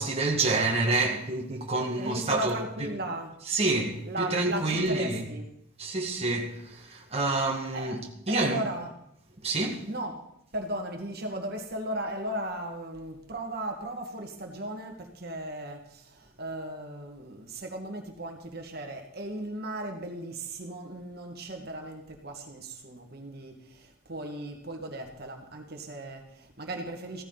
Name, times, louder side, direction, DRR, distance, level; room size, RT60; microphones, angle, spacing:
voice 1, 0.0-2.9 3.5-5.3 5.8-8.0 8.3-8.6 9.4-9.9, right 2 dB, 30° right, 1.9 m, -28 dB
voice 2, 2.0-3.3 4.0-5.5 7.2-8.0 8.3-8.9 9.9-10.1 10.5-27.2, right 1 dB, 50° right, 1.9 m, -36 dB
16.0 x 14.0 x 4.0 m
head